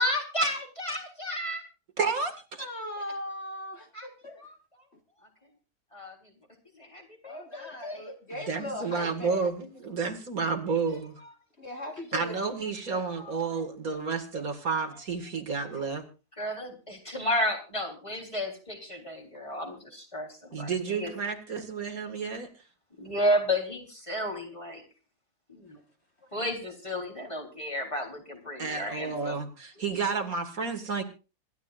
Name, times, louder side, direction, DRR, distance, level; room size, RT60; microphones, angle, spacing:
voice 1, 0.0-1.6 3.9-4.1 4.4-4.5 5.9-6.3 6.8-8.1 13.2-13.4 16.4-21.1 23.0-24.8 25.5-25.8 26.3-29.4, equal, 20° left, 1 dB, 3.9 m, -32 dB
voice 2, 2.0-2.7 8.3-11.2 12.1-16.1 20.5-22.5 28.6-31.0, right 5 dB, 60° right, 5 dB, 2.4 m, -31 dB
voice 3, 2.6-4.4 7.2-9.5 11.6-12.3 12.9-13.1, left 1 dB, 40° left, 3 dB, 1.9 m, -39 dB
26.5 x 12.0 x 2.5 m, 0.33 s
omnidirectional pair, 1.7 m